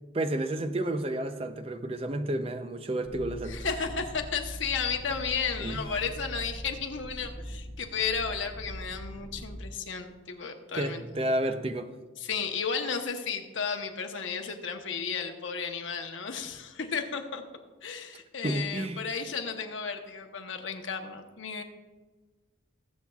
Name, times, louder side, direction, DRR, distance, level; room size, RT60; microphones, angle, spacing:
voice 1, 0.1-3.6 5.6-5.8 10.8-11.9 18.4-19.0, right 1 dB, 30° right, 8 dB, 0.5 m, -31 dB
sound 1, 3.0-9.6, equal, ahead, 2.5 m, -42 dB
voice 2, 3.5-11.0 12.2-17.4 17.8-21.6, left 6 dB, 85° left, 4 dB, 1.0 m, -33 dB
20.0 x 7.4 x 2.4 m, 1.3 s
head